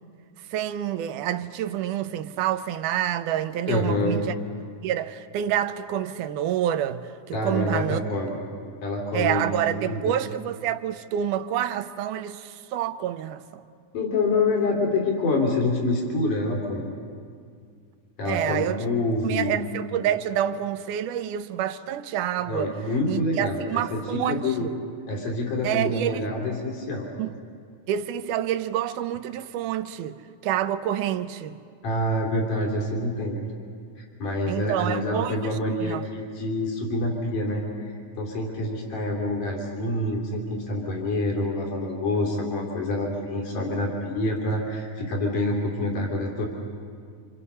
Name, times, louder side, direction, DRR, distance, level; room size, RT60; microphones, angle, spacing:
voice 1, 0.5-4.4 4.8-7.0 7.3-8.0 9.1-13.6 18.3-18.8 19.2-22.7 23.1-24.7 25.6-26.3 27.2-27.3 27.9-30.2 30.4-31.6 34.5-36.1, right 11 dB, 85° right, 2.3 m, -28 dB
voice 2, 3.7-4.2 7.3-8.3 8.8-10.0 13.9-16.9 18.2-19.5 22.5-24.7 25.1-27.1 31.8-33.4 34.2-46.5, left 2 dB, 90° left, 4.7 m, -27 dB
29.5 x 27.0 x 5.7 m
omnidirectional pair, 3.5 m